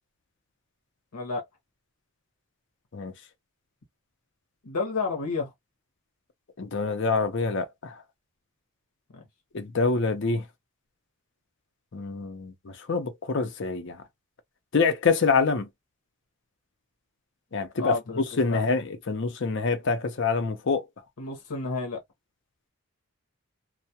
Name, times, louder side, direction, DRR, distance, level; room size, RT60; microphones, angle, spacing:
voice 1, 1.1-1.4 4.6-5.5 9.1-9.2 17.8-18.7 21.2-22.0, left 4 dB, 85° left, 0.8 m, -31 dB
voice 2, 6.6-7.9 9.5-10.4 11.9-14.0 14.7-15.7 17.5-20.8, left 4 dB, 55° left, 0.5 m, -26 dB
2.2 x 2.1 x 2.7 m
head